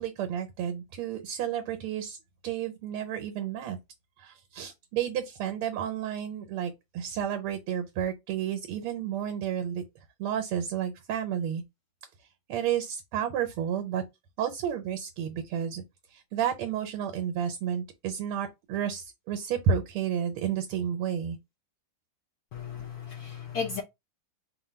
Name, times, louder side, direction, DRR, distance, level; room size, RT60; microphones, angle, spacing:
voice 1, 0.0-2.2 2.4-3.8 4.2-9.8 10.2-11.6 12.5-14.0 14.4-15.8 16.1-21.4, right 8 dB, 90° right, 1.7 m, -31 dB
voice 2, 22.5-23.8, left 6 dB, 80° left, 0.8 m, -35 dB
3.8 x 2.2 x 4.2 m
omnidirectional pair, 2.3 m